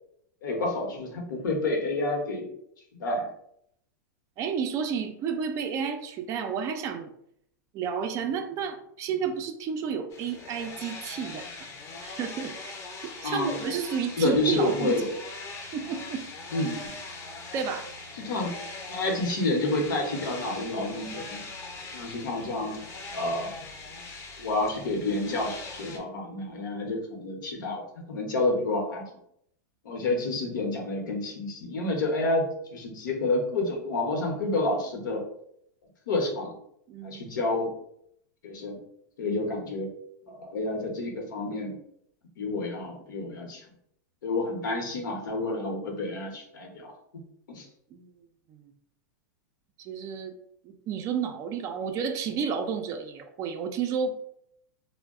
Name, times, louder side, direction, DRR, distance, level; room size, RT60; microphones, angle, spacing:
voice 1, 0.4-2.5 3.0-3.3 13.2-13.6 14.2-15.1 16.5-16.9 18.1-18.5 18.9-21.4 21.9-22.8 23.1-23.5 24.4-29.0 29.8-35.2 36.1-36.5 37.0-37.7 38.4-38.8 39.2-39.9 40.3-41.7 42.4-43.6 44.2-46.9 47.5-47.7, left 2 dB, 85° left, 2 dB, 0.8 m, -29 dB
voice 2, 4.4-7.1 7.7-11.7 12.0-12.5 13.0-15.0 15.7-16.2 17.5-17.9 36.9-37.2 40.3-40.4 47.9-48.1 48.5-48.6 49.8-50.3 50.6-54.2, right 6 dB, 30° right, 6 dB, 0.3 m, -31 dB
sound 1, 10.1-26.0, left 3 dB, 30° left, 0.5 m, -41 dB
2.3 x 2.0 x 3.5 m, 0.72 s
supercardioid pair, 140°, 10 cm